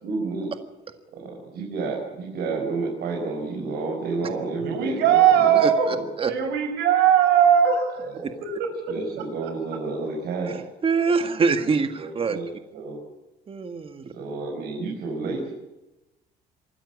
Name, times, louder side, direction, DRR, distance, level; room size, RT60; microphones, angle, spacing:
voice 1, 0.0-0.5 1.1-6.1 7.9-8.4 8.9-10.6 12.0-13.0 14.1-15.5, right 3 dB, 70° right, -1 dB, 5.6 m, -31 dB
voice 2, 4.6-5.9 6.2-8.1 8.4-9.0 9.4-9.5, right 9 dB, 85° right, 6 dB, 5.7 m, -19 dB
voice 3, 5.6-6.3 10.8-12.4 13.5-14.1, right 5 dB, 35° right, 8 dB, 1.7 m, -24 dB
25.0 x 13.5 x 8.4 m, 1.0 s
cardioid pair, 110°, 17 cm